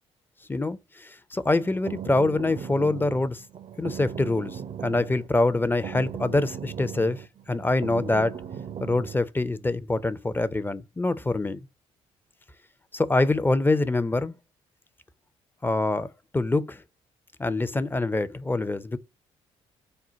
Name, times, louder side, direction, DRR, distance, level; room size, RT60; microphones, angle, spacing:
voice 1, 0.5-3.4 3.8-7.2 7.5-8.4 8.8-11.6 12.9-14.3 15.6-16.1 16.3-16.8 17.4-19.0, left 2 dB, 15° left, 0.5 m, -25 dB
sound 1, 1.4-9.2, right 8 dB, 45° right, 0.5 m, -38 dB
4.3 x 2.2 x 3.9 m
hypercardioid pair, 50°, 14 cm